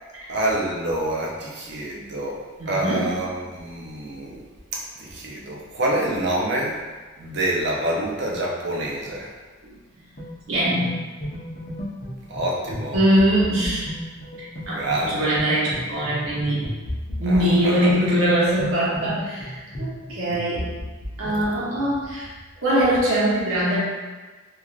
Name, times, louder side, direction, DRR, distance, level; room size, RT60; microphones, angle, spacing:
voice 1, 0.3-4.4 4.7-6.8 7.2-9.3 12.3-13.0 14.7-15.3 17.3-17.7, right 1 dB, 55° right, -3 dB, 0.6 m, -27 dB
voice 2, 2.6-3.2 9.6-9.7 10.5-11.0 12.9-13.9 14.7-16.7 17.2-20.7 21.2-22.3 22.6-23.8, right 1 dB, 75° right, -8 dB, 0.9 m, -22 dB
sound 1, 10.2-21.4, equal, 45° left, 0.7 m, -34 dB
3.1 x 2.4 x 2.4 m, 1.3 s
head